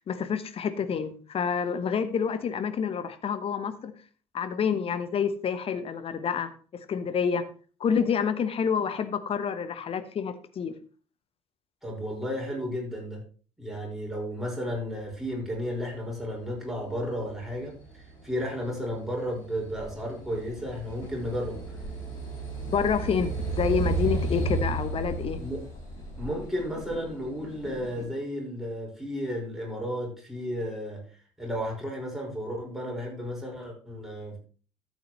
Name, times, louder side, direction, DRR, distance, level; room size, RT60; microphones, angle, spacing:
voice 1, 0.1-3.9 4.3-7.5 7.8-10.7 22.7-25.4, left 6 dB, 35° left, 12 dB, 1.0 m, -28 dB
voice 2, 11.8-13.2 13.6-21.6 25.4-25.6 26.2-31.0 31.4-34.4, equal, ahead, -2 dB, 5.3 m, -33 dB
sound 1, 16.7-28.0, right 3 dB, 60° left, 5.7 m, -34 dB
13.0 x 8.4 x 3.2 m, 0.39 s
figure-of-eight pair, 55°, 16 cm